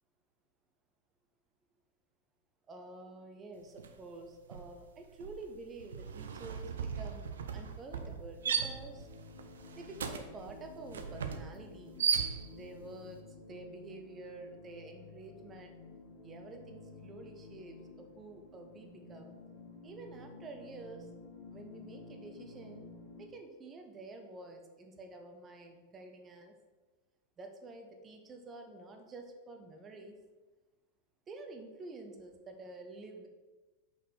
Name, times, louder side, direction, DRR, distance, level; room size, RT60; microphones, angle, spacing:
voice 1, 2.7-9.1 9.7-12.0 12.5-15.7 16.2-19.4 19.8-21.1 21.5-22.9 23.2-26.6 27.4-30.2 31.3-33.3, right 2 dB, 25° right, 4 dB, 0.9 m, -49 dB
sound 1, 3.8-4.1 4.3-12.8, right 6 dB, 65° right, 0.5 m, -37 dB
sound 2, 8.4-23.3, left 3 dB, 60° left, 1.1 m, -52 dB
5.5 x 4.3 x 5.0 m, 1.2 s
figure-of-eight pair, 90°, 0 cm